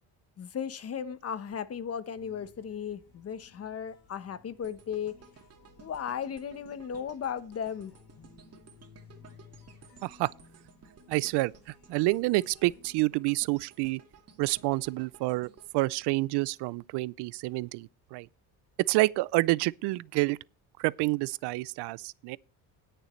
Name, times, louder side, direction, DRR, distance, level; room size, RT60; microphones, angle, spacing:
voice 1, 0.4-5.1 5.8-7.9, left 8 dB, 35° left, 1.0 m, -36 dB
sound 1, 2.1-12.9, left 5 dB, 60° left, 5.3 m, -58 dB
sound 2, 4.6-16.8 17.2-17.4, right 5 dB, 35° right, 2.1 m, -57 dB
voice 2, 10.0-10.3 11.1-14.0 14.4-18.3 18.9-20.4 20.8-22.4, right 21 dB, 70° right, 0.5 m, -28 dB
19.0 x 6.8 x 3.1 m
cardioid pair, 110°, 42 cm